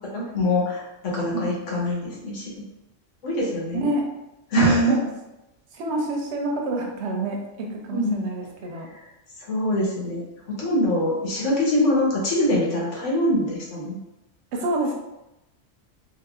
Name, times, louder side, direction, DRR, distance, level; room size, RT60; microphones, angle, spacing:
voice 1, 0.1-2.6 3.2-3.8 4.5-4.8 7.9-8.2 8.8-9.0 9.4-10.2 10.5-14.0, left 1 dB, 80° left, -4 dB, 1.3 m, -24 dB
voice 2, 3.7-4.1 4.6-5.1 5.7-8.9 14.5-14.9, right 2 dB, 70° right, 1 dB, 0.8 m, -26 dB
3.6 x 2.7 x 2.4 m, 0.94 s
omnidirectional pair, 1.3 m